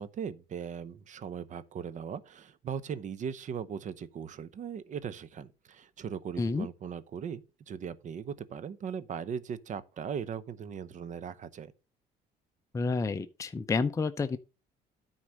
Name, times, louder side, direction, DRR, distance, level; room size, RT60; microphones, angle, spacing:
voice 1, 0.0-11.7, right 7 dB, 45° right, 0.8 m, -39 dB
voice 2, 6.4-6.7 12.7-14.4, left 4 dB, 20° left, 0.5 m, -29 dB
9.6 x 4.1 x 6.3 m
cardioid pair, 110°, 17 cm